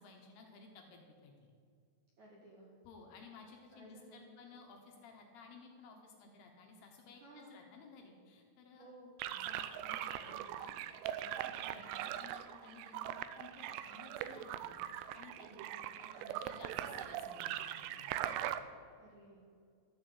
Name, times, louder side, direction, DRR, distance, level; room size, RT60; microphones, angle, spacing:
voice 1, 0.0-1.5 2.9-8.9 9.2-10.7 11.2-18.5, left 4 dB, 70° left, 2 dB, 2.8 m, -56 dB
voice 2, 2.2-2.7 3.7-4.3 7.2-7.6 8.7-9.1 11.4-11.7 15.4-16.0 19.0-19.4, right 1 dB, 60° right, -2 dB, 2.0 m, -57 dB
sound 1, 9.2-18.6, right 12 dB, 85° right, 2.4 m, -41 dB
13.0 x 7.4 x 8.2 m, 2.3 s
omnidirectional pair, 5.4 m